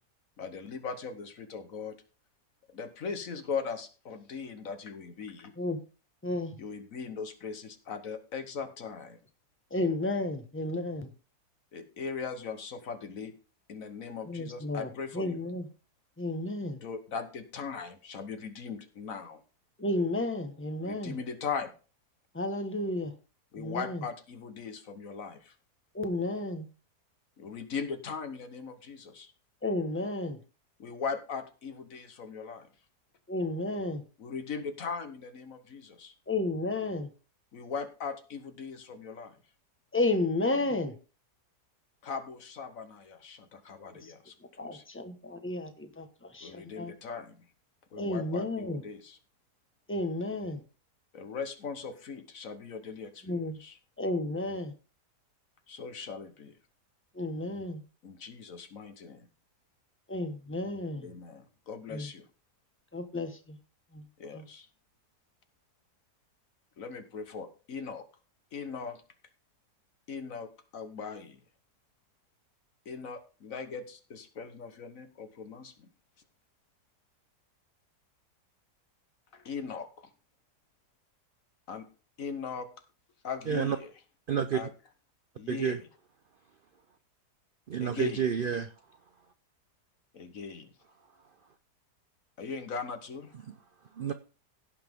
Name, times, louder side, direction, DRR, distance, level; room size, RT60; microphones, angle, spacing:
voice 1, 0.4-2.0 2.7-5.5 6.6-9.2 11.7-13.3 13.7-15.4 16.8-19.4 20.8-21.7 23.5-25.5 27.4-29.3 30.8-32.7 34.2-36.1 37.5-39.4 42.0-44.8 46.4-47.5 47.9-49.2 51.1-53.8 55.7-56.6 58.0-59.3 61.0-62.3 64.2-64.7 66.8-68.0 68.5-69.0 70.1-71.4 72.8-75.7 79.3-80.1 81.7-81.8 82.2-82.7 83.2-83.9 84.5-84.7 85.4-85.7 87.8-88.2 90.1-90.7 92.4-93.3, left 5 dB, 55° left, 1.5 m, -39 dB
voice 2, 6.2-6.6 9.7-11.1 14.3-15.7 16.2-16.8 19.8-21.2 22.3-23.1 23.6-24.0 25.9-26.7 29.6-30.4 33.3-34.0 36.3-37.1 39.9-40.9 44.0-44.1 44.6-46.9 48.0-48.8 49.9-50.6 53.2-53.6 54.0-54.7 57.1-57.8 60.1-61.1 61.9-62.1 62.9-63.6 63.9-64.1 64.3-64.4, left 2 dB, 10° left, 1.0 m, -32 dB
voice 3, 83.5-83.8 84.3-84.6 85.5-85.8 87.7-88.7 93.5-93.6 93.9-94.1, right 7 dB, 80° right, 0.4 m, -29 dB
16.5 x 5.9 x 3.6 m
omnidirectional pair, 1.7 m